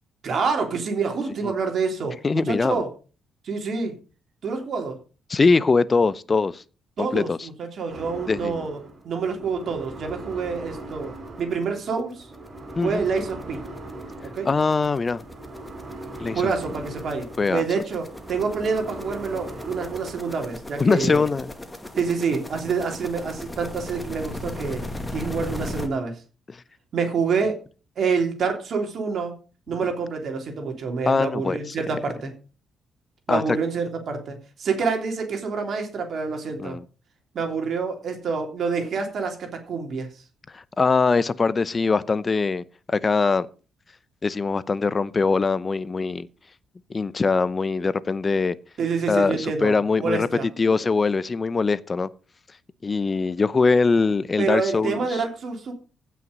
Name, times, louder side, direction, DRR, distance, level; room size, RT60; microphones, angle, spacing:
voice 1, 0.2-2.1 2.5-2.9 3.4-3.9 4.4-5.0 7.0-8.8 9.0-12.3 12.8-13.6 14.3-14.5 16.3-21.2 22.0-24.8 25.1-26.2 26.9-27.6 28.0-29.4 29.7-32.3 33.3-36.8 37.3-40.1 48.8-50.5 54.4-55.7, right 5 dB, 60° right, 3.2 m, -27 dB
voice 2, 2.2-2.8 5.3-6.6 7.0-7.5 8.3-8.7 12.8-13.0 14.4-15.2 16.2-16.4 17.4-17.8 20.8-21.5 26.5-26.6 31.1-31.7 33.3-33.6 36.6-36.8 40.5-43.5 44.2-46.3 46.9-48.6 49.1-50.3 50.6-52.1 52.8-55.2, left 4 dB, 30° left, 0.7 m, -22 dB
sound 1, 7.9-20.5, right 2 dB, 30° right, 6.6 m, -40 dB
sound 2, 10.4-10.5 10.9-11.0 11.3-25.9, left 1 dB, 10° left, 2.1 m, -38 dB
15.5 x 5.9 x 5.3 m
cardioid pair, 90°, 0 cm